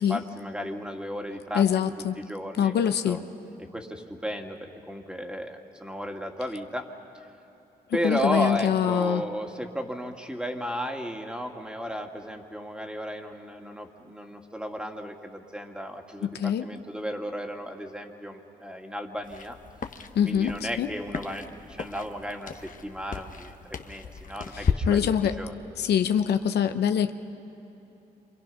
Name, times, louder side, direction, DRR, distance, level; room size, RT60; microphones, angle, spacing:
voice 1, 0.0-1.6 2.0-3.2 3.7-6.9 7.9-19.6 20.2-25.1 25.4-25.5, equal, 5° right, 3 dB, 2.4 m, -34 dB
voice 2, 1.5-2.2 2.6-3.2 8.0-9.2 16.2-16.7 20.1-20.9 24.5-25.4 25.8-27.1, left 9 dB, 80° left, 8 dB, 0.7 m, -24 dB
sound 1, 19.2-24.7, left 6 dB, 55° left, 1.2 m, -35 dB
28.0 x 26.0 x 5.7 m, 2.8 s
supercardioid pair, 55°, 17 cm